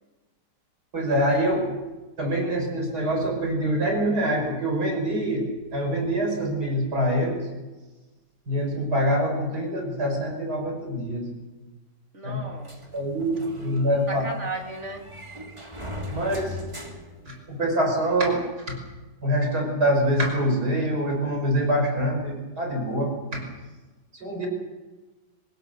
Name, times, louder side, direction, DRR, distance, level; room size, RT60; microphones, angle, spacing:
voice 1, 0.9-1.7 2.2-7.5 8.5-11.2 12.2-12.4 12.9-14.2 16.1-16.6 17.3-18.8 19.2-23.5 24.1-24.5, equal, 65° right, 2 dB, 6.1 m, -25 dB
voice 2, 12.1-12.7 14.1-15.0, right 2 dB, 40° right, 2 dB, 3.3 m, -34 dB
sound 1, 12.6-17.9, left 1 dB, 15° right, 2.8 m, -40 dB
25.0 x 20.0 x 6.9 m, 1.2 s
omnidirectional pair, 1.8 m